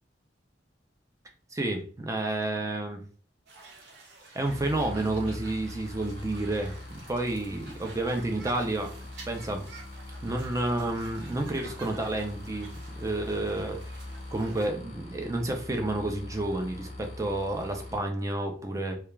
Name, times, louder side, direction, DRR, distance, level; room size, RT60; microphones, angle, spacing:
voice 1, 1.5-3.0 4.3-8.9 9.3-9.6 10.2-12.7 13.0-14.0 14.3-19.0, right 2 dB, 20° right, 4 dB, 0.4 m, -30 dB
sound 1, 3.5-14.7, right 3 dB, 70° right, 0.7 m, -51 dB
sound 2, 4.4-18.0, left 1 dB, 35° left, 0.5 m, -42 dB
2.3 x 2.3 x 3.0 m, 0.42 s
head